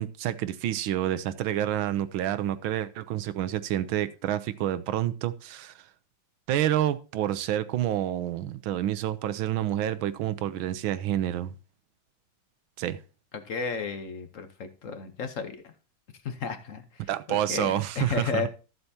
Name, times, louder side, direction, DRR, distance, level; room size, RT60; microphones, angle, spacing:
voice 1, 0.0-5.8 6.5-11.5 12.8-13.0 17.1-18.4, right 12 dB, 75° right, 1.4 m, -28 dB
voice 2, 13.3-15.6 16.2-18.5, left 5 dB, 55° left, 0.9 m, -33 dB
13.5 x 7.9 x 2.8 m
omnidirectional pair, 2.3 m